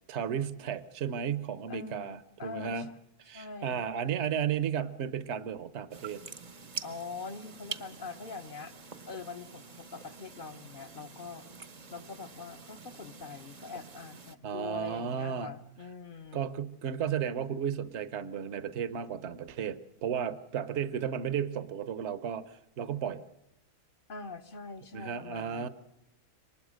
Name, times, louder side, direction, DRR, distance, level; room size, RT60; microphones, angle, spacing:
voice 1, 0.1-2.9 3.2-6.2 14.4-15.5 16.3-23.2 24.9-25.7, right 8 dB, 50° right, 13 dB, 1.1 m, -34 dB
voice 2, 1.7-2.9 3.3-3.9 6.8-8.7 9.1-11.5 11.9-16.5 24.1-25.7, left 4 dB, 40° left, 10 dB, 1.0 m, -43 dB
sound 1, 5.9-14.4, right 5 dB, 35° right, 0.8 m, -46 dB
23.5 x 20.0 x 6.4 m, 0.83 s
omnidirectional pair, 1.6 m